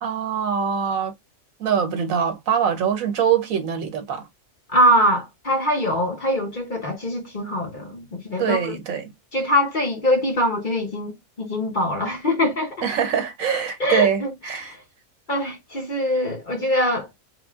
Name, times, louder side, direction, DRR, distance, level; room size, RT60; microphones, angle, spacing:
voice 1, 0.0-1.1 1.6-4.3 8.4-9.1 12.8-14.7, right 7 dB, 80° right, 1.2 m, -23 dB
voice 2, 4.7-8.8 9.3-12.8 13.8-14.3 14.6-14.8 15.3-17.1, equal, 40° left, 1.1 m, -23 dB
3.5 x 2.2 x 3.5 m
omnidirectional pair, 1.4 m